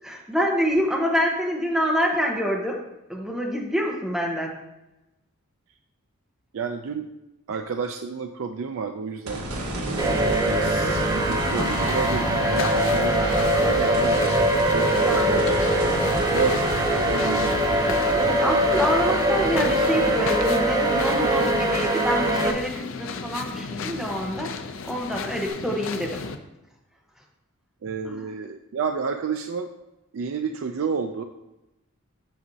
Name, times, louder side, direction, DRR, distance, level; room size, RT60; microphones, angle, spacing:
voice 1, 0.0-2.8 3.1-4.5 14.9-15.4 18.1-24.5 24.8-26.2 28.0-28.3, equal, ahead, -1 dB, 0.9 m, -26 dB
voice 2, 6.5-7.1 7.5-9.4 9.8-15.6 16.3-16.7 17.1-17.8 27.8-29.7 30.1-31.2, right 5 dB, 65° right, 5 dB, 0.4 m, -30 dB
sound 1, 9.3-21.6 22.0-22.1 25.5-25.6, right 1 dB, 90° right, 1.3 m, -33 dB
sound 2, 10.0-22.5, right 1 dB, 20° right, 0.6 m, -22 dB
sound 3, 11.6-26.4, left 4 dB, 60° left, 0.5 m, -34 dB
7.9 x 6.2 x 2.7 m, 0.95 s
head